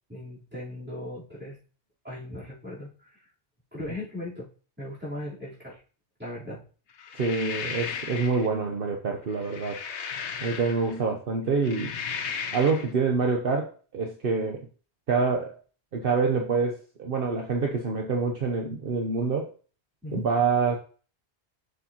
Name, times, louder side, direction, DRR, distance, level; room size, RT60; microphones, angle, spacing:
voice 1, 0.1-1.6 2.0-3.2 3.7-4.5 4.8-5.8 6.2-6.6 20.0-20.3, left 1 dB, 10° right, -8 dB, 3.6 m, -38 dB
sound 1, 7.0-8.5 9.3-11.0 11.5-12.9, left 6 dB, 85° left, 1.1 m, -35 dB
voice 2, 7.1-9.8 10.4-11.9 12.5-14.7 15.1-15.6 15.9-19.5 20.1-20.8, right 4 dB, 60° right, 3 dB, 1.0 m, -26 dB
7.1 x 6.4 x 2.9 m, 0.38 s
omnidirectional pair, 1.1 m